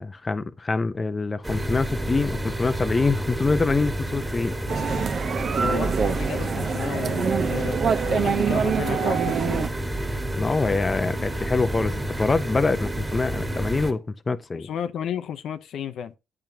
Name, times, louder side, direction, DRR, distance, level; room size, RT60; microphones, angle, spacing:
voice 1, 0.0-4.6 10.4-14.7, left 3 dB, 25° left, 0.5 m, -25 dB
sound 1, 1.4-13.9, right 1 dB, 15° right, 1.7 m, -29 dB
sound 2, 4.7-9.7, right 6 dB, 55° right, 0.6 m, -25 dB
voice 2, 5.6-9.7 14.5-16.1, left 8 dB, 70° left, 0.6 m, -33 dB
8.8 x 5.9 x 2.7 m
cardioid pair, 90°, 0 cm